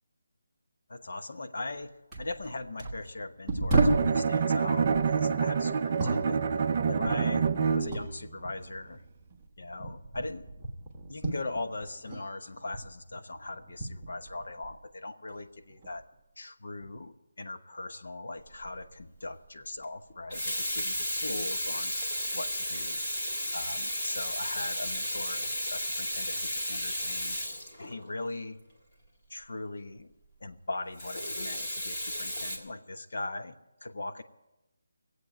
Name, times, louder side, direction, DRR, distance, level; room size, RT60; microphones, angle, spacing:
voice 1, 0.9-6.4 6.9-7.5 7.7-9.0 9.6-10.5 11.1-16.0 16.4-21.9 22.3-23.0 23.5-27.4 27.8-28.6 29.3-30.1 30.4-34.2, left 2 dB, 50° left, 7 dB, 1.0 m, -40 dB
sound 1, 1.7-1.8 2.1-4.2 4.8-8.2 8.4-12.3 12.5-14.9 15.3-16.0 16.8-17.0, right 2 dB, ahead, 1.3 m, -33 dB
Bowed string instrument, 3.8-8.2, right 6 dB, 20° right, 0.5 m, -27 dB
Water tap faucet / Sink (filling or washing), 18.5-18.8 20.1-28.3 31.0-32.6, equal, 20° left, 1.8 m, -33 dB
17.5 x 8.1 x 9.0 m, 0.96 s
hypercardioid pair, 180°, 0 cm